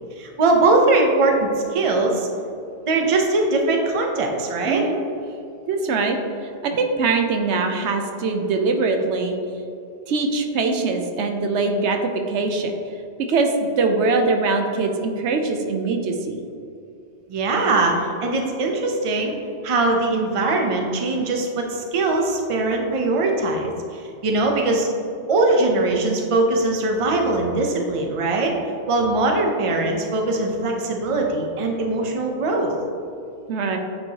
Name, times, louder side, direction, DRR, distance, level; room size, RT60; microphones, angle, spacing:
voice 1, 0.2-2.3 2.9-4.8 17.3-19.3 19.6-24.9 25.3-28.5 28.9-32.7, right 2 dB, 35° right, 1 dB, 0.6 m, -21 dB
voice 2, 4.7-5.0 5.7-9.4 10.1-12.7 13.3-16.4 33.5-33.8, right 3 dB, 75° right, 4 dB, 0.9 m, -22 dB
8.6 x 4.5 x 2.8 m, 2.7 s
omnidirectional pair, 1.2 m